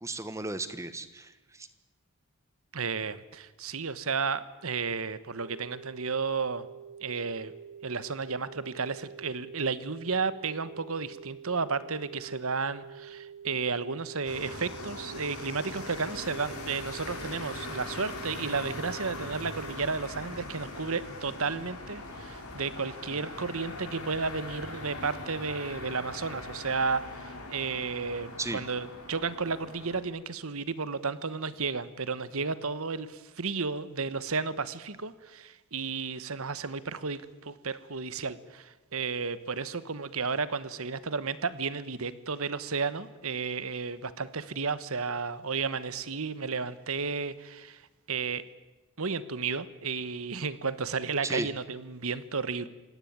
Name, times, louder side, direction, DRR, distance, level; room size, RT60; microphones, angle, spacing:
voice 1, 0.0-1.7 28.4-28.6 51.2-51.5, right 2 dB, 15° right, 12 dB, 1.2 m, -35 dB
voice 2, 2.7-6.7 7.0-7.5 7.8-48.4 49.0-52.7, right 4 dB, 75° right, 15 dB, 1.3 m, -33 dB
sound 1, 5.4-19.8, right 7 dB, 45° right, 1.0 m, -47 dB
sound 2, 14.2-30.0, left 2 dB, 85° left, 5.0 m, -41 dB
26.0 x 18.0 x 8.8 m, 1.1 s
head